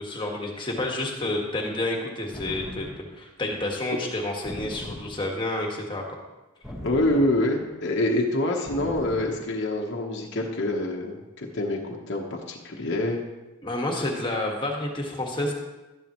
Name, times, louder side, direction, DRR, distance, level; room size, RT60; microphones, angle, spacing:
voice 1, 0.0-6.2 13.6-15.5, left 1 dB, 20° left, 0 dB, 1.7 m, -29 dB
sound 1, 2.3-3.2 4.4-5.4 6.6-7.7 8.7-9.5, left 1 dB, ahead, 1.4 m, -39 dB
voice 2, 6.8-13.2, left 1 dB, 55° left, -1 dB, 1.1 m, -26 dB
12.5 x 10.5 x 3.1 m, 1.1 s
head